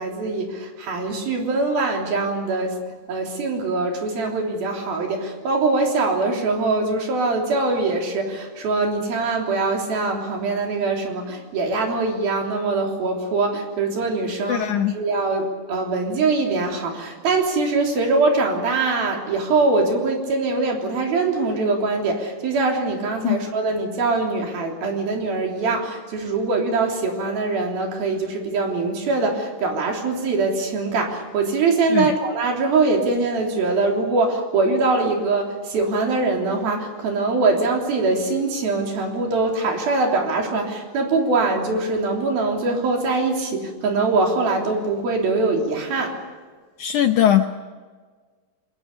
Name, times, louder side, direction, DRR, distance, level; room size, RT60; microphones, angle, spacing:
voice 1, 0.0-2.8 3.1-46.2, right 3 dB, 70° right, 1 dB, 5.2 m, -23 dB
voice 2, 14.5-14.9 23.2-23.4 31.9-32.1 46.8-47.5, left 11 dB, 75° left, 7 dB, 1.9 m, -19 dB
28.0 x 22.0 x 6.7 m, 1.5 s
omnidirectional pair, 4.4 m